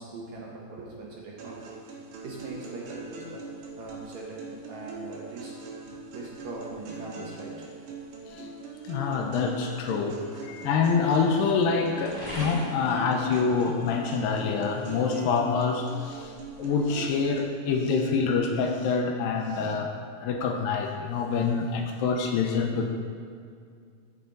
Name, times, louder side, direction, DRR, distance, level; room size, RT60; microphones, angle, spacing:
voice 1, 0.0-3.4 3.8-5.5 6.1-7.7, right 3 dB, 65° right, -4 dB, 2.0 m, -41 dB
sound 1, 1.4-17.4, right 3 dB, 85° right, 3.0 m, -42 dB
sound 2, 2.9-17.9, equal, 45° right, 0.4 m, -47 dB
voice 2, 8.3-19.9 20.2-22.9, left 5 dB, 85° left, 3 dB, 2.3 m, -26 dB
13.0 x 4.4 x 3.8 m, 2.2 s
omnidirectional pair, 4.1 m